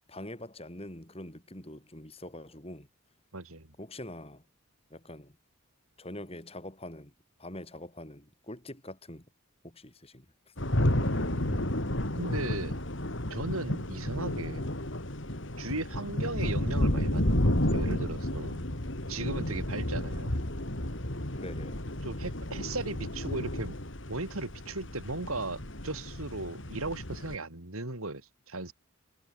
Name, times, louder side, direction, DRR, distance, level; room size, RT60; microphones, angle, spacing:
voice 1, 0.1-2.9 3.8-4.4 4.9-5.4 6.0-7.1 7.4-9.3 9.6-10.5 15.9-16.1 21.3-21.8, left 1 dB, 25° left, 4.8 m, -44 dB
voice 2, 3.3-3.7 10.9-11.7 12.1-12.8 13.3-14.7 15.6-18.6 19.1-20.3 22.0-23.8 24.1-28.7, right 2 dB, 75° right, 3.3 m, -37 dB
sound 1, 10.6-27.4, left 1 dB, 55° left, 3.2 m, -31 dB
head